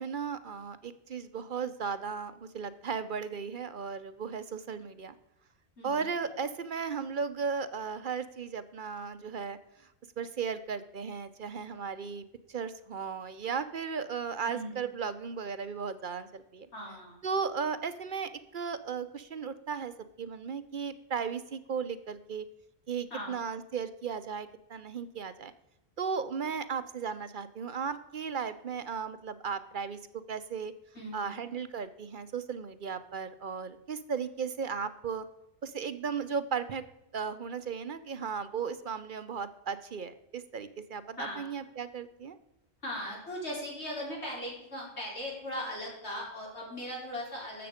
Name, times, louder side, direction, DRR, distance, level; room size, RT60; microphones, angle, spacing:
voice 1, 0.0-5.1 5.8-9.6 10.2-16.7 17.2-19.9 20.2-22.5 22.9-25.5 26.0-30.7 31.1-35.2 35.6-36.8 37.1-42.4, right 6 dB, 55° right, 12 dB, 0.8 m, -36 dB
voice 2, 5.8-6.1 14.5-14.8 16.7-17.2 23.1-23.4 30.9-31.5 41.2-41.5 42.8-47.7, equal, 85° left, -4 dB, 5.0 m, -39 dB
13.0 x 7.7 x 5.0 m, 0.88 s
omnidirectional pair, 1.1 m